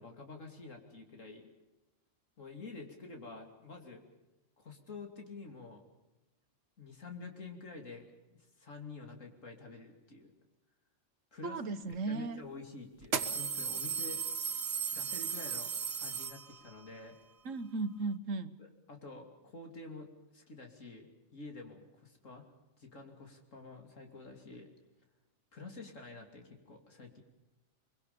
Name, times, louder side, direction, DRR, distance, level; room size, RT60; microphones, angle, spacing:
voice 1, 0.0-1.5 2.4-4.0 4.6-5.8 6.8-10.3 11.3-11.8 12.1-14.3 14.9-15.7 16.0-17.2 18.6-22.5 22.8-24.7 25.5-27.2, left 3 dB, 85° left, 3 dB, 3.3 m, -49 dB
voice 2, 11.4-12.4 17.4-18.5, right 3 dB, 85° right, 11 dB, 1.7 m, -36 dB
sound 1, 11.9-12.0 13.0-16.8, right 6 dB, 55° right, 1.4 m, -36 dB
23.5 x 23.5 x 7.0 m, 1.0 s
omnidirectional pair, 1.3 m